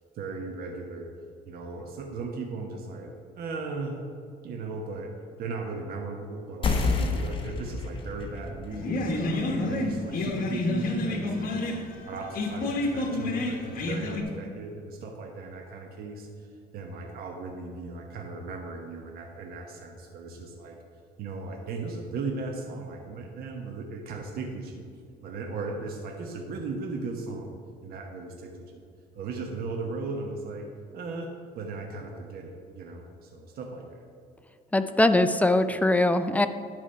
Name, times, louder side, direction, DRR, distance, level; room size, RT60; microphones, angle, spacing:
voice 1, 0.1-1.1 1.4-4.0 4.4-5.1 5.4-9.3 9.6-16.5 16.7-20.8 21.2-24.9 25.2-27.5 27.8-28.8 29.1-34.1, right 3 dB, 65° right, 1 dB, 1.0 m, -37 dB
sound 1, 6.6-11.8, left 4 dB, 30° left, 1.1 m, -32 dB
sound 2, 8.7-14.2, left 2 dB, 55° left, 1.2 m, -29 dB
voice 2, 34.7-36.5, left 2 dB, 10° left, 10 dB, 0.4 m, -22 dB
10.5 x 4.7 x 5.5 m, 2.3 s
cardioid pair, 110°, 17 cm